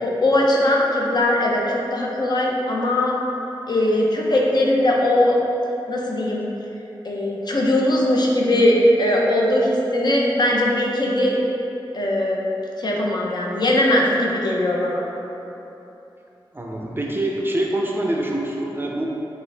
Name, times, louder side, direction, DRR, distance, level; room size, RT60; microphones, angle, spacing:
voice 1, 0.0-3.2 3.7-5.4 5.9-6.5 7.0-11.4 11.9-12.4 12.8-15.0, left 1 dB, 50° left, -2 dB, 0.5 m, -20 dB
voice 2, 16.5-19.0, right 1 dB, 25° right, -2 dB, 0.4 m, -25 dB
4.7 x 2.5 x 3.2 m, 3.0 s
wide cardioid pair, 100°, 9 cm